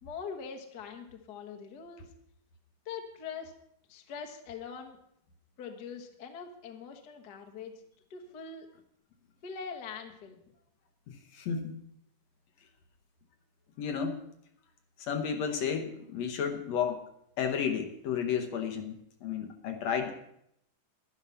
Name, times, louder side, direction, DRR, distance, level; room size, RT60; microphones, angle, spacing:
voice 1, 0.0-2.0 2.8-3.5 3.9-5.0 5.6-7.8 8.1-8.7 9.4-10.4, left 6 dB, 50° left, 2 dB, 1.2 m, -42 dB
voice 2, 11.1-11.7 13.8-14.2 15.0-17.0 17.4-20.1, left 7 dB, 65° left, 5 dB, 2.0 m, -32 dB
11.0 x 10.5 x 5.6 m, 0.74 s
omnidirectional pair, 3.6 m